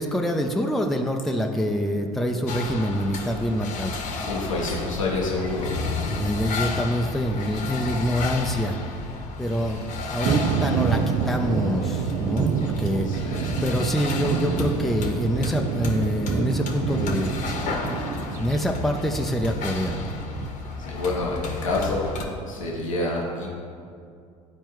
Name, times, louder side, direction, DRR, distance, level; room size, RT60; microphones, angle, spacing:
voice 1, 0.0-4.0 6.0-8.8 9.4-17.5 18.4-20.0, equal, ahead, 2 dB, 0.6 m, -26 dB
sound 1, 2.5-22.2, left 3 dB, 50° left, 1.1 m, -32 dB
voice 2, 4.3-5.7 13.1-13.5 18.3-18.6 20.8-22.1 22.5-23.5, left 2 dB, 90° left, -3 dB, 1.1 m, -28 dB
sound 2, 10.2-20.5, right 7 dB, 50° right, 0.6 m, -28 dB
12.5 x 4.5 x 3.1 m, 2.3 s
hypercardioid pair, 70°, 16 cm